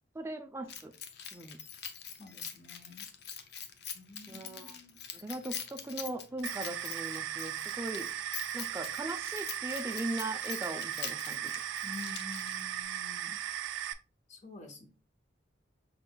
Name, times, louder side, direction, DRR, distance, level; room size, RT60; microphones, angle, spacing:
voice 1, 0.1-0.9 1.3-1.6 4.3-4.7 5.1-8.1 8.5-11.5, right 2 dB, 15° right, 6 dB, 0.4 m, -39 dB
Keys jangling, 0.7-12.8, left 8 dB, 60° left, 0.5 m, -44 dB
voice 2, 2.2-3.1 3.9-5.0 11.8-13.4 14.3-14.9, left 3 dB, 40° left, 4 dB, 0.9 m, -49 dB
sound 1, 6.4-13.9, right 10 dB, 80° right, 0.4 m, -37 dB
5.3 x 3.9 x 2.2 m, 0.35 s
head